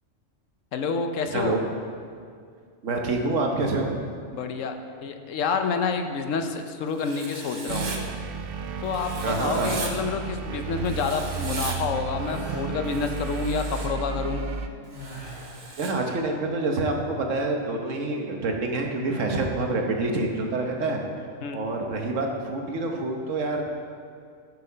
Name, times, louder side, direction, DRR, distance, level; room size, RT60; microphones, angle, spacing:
voice 1, 0.7-1.6 4.3-4.8 5.0-8.0 8.8-14.5 21.4-21.6, left 5 dB, 80° left, 6 dB, 1.1 m, -28 dB
voice 2, 1.3-1.7 2.8-4.0 9.2-9.8 15.8-21.0 21.5-23.6, right 2 dB, 75° right, 2 dB, 1.4 m, -27 dB
Writing, 7.0-8.0 8.9-9.9 10.8-11.8 12.8-13.9 14.9-15.9, right 3 dB, 40° right, 1.0 m, -38 dB
sound 1, 7.7-14.7, right 5 dB, 60° right, 0.7 m, -33 dB
sound 2, 12.1-12.7 14.9-15.6, equal, 20° left, 2.2 m, -39 dB
8.2 x 6.7 x 5.5 m, 2.2 s
omnidirectional pair, 1.3 m